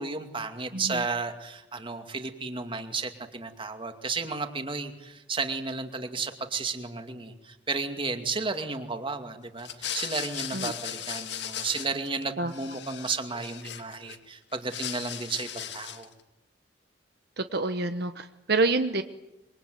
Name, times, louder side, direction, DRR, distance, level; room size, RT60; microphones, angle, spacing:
voice 1, 0.0-16.1, right 4 dB, 30° right, 6 dB, 2.4 m, -33 dB
voice 2, 0.7-1.0 10.5-10.7 12.4-12.5 17.4-19.0, right 3 dB, 65° right, 8 dB, 1.2 m, -27 dB
sound 1, 9.6-12.2 12.5-14.2 14.5-16.1, left 10 dB, 70° left, 2.4 m, -37 dB
26.0 x 23.5 x 9.4 m, 0.94 s
head